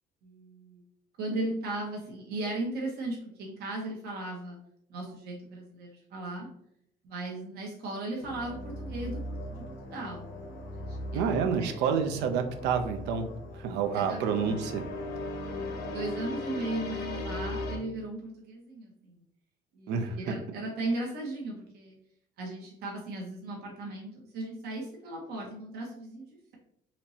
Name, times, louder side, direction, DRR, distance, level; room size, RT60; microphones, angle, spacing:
voice 1, 0.2-0.8 1.2-4.6 4.9-6.5 7.0-10.3 10.9-11.3 11.6-11.7 13.9-14.6 15.4-19.1 19.7-22.0 22.4-26.6, right 2 dB, 70° right, -2 dB, 1.0 m, -37 dB
sound 1, 8.2-17.8, left 1 dB, 80° left, 0.8 m, -38 dB
voice 2, 11.1-13.3 13.6-14.8 19.9-20.3, right 6 dB, 85° right, 7 dB, 0.5 m, -28 dB
4.2 x 3.0 x 2.7 m, 0.73 s
cardioid pair, 110°, 17 cm